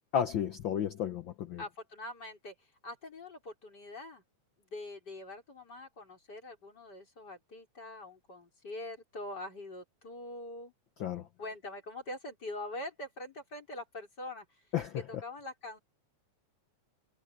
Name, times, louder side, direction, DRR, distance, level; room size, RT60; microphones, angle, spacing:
voice 1, 0.1-1.6 11.0-11.3 14.7-15.0, left 9 dB, 90° left, 1.0 m, -32 dB
voice 2, 1.6-2.5 2.8-4.2 4.7-10.7 11.4-14.5 15.1-15.8, left 2 dB, 30° left, 5.5 m, -44 dB
omnidirectional pair, 3.4 m